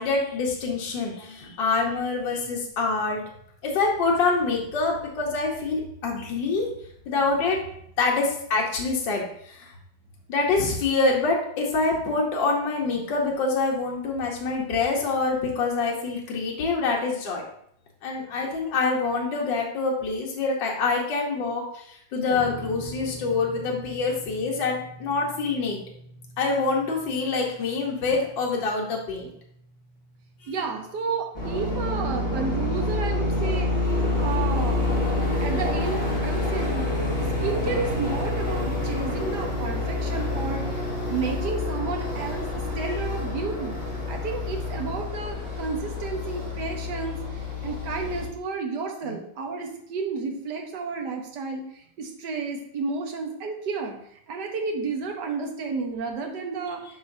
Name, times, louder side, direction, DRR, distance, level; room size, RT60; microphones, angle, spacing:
voice 1, 0.0-3.2 3.6-6.7 7.1-7.6 8.0-9.7 10.3-17.4 18.0-25.8 26.4-29.3 30.4-30.5 42.8-42.9 49.0-49.1, left 3 dB, 70° left, -2 dB, 1.7 m, -26 dB
sound 1, 22.3-34.8, equal, ahead, 1.9 m, -46 dB
voice 2, 30.5-33.7 34.2-34.9 35.4-36.9 37.2-40.6 41.1-43.8 44.1-54.0 54.3-56.8, right 4 dB, 65° right, 3 dB, 1.5 m, -31 dB
sound 2, 31.3-48.3, left 2 dB, 20° left, 2.8 m, -27 dB
11.5 x 4.0 x 2.6 m, 0.69 s
omnidirectional pair, 2.1 m